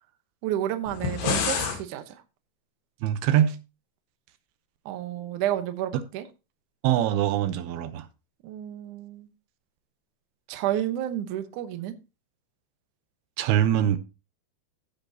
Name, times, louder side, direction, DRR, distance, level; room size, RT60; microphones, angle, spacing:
voice 1, 0.4-2.0 4.9-6.3 8.4-9.3 10.5-12.0, right 12 dB, 70° right, 2.1 m, -30 dB
sound 1, 0.9-1.8, left 6 dB, 70° left, 3.6 m, -27 dB
voice 2, 3.0-3.6 5.9-6.0 6.8-8.1 13.4-14.0, right 11 dB, 85° right, 2.8 m, -23 dB
16.0 x 6.6 x 2.8 m
omnidirectional pair, 4.5 m